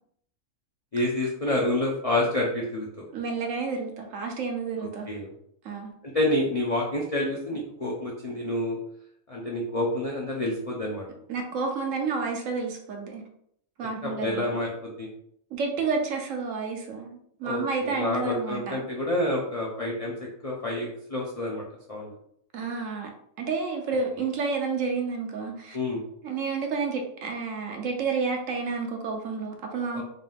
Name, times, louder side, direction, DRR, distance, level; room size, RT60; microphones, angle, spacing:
voice 1, 0.9-3.0 4.8-5.3 6.0-8.8 9.3-11.0 14.0-15.1 17.4-20.1 20.4-21.6 21.9-22.1 25.7-26.0 29.9-30.0, left 1 dB, 50° left, -3 dB, 0.4 m, -28 dB
voice 2, 3.1-5.1 5.6-5.9 11.3-13.2 13.8-14.5 15.5-18.9 22.5-23.1 23.4-25.8 26.2-30.0, right 4 dB, 65° right, 3 dB, 1.0 m, -30 dB
3.9 x 2.6 x 3.5 m, 0.70 s
omnidirectional pair, 1.6 m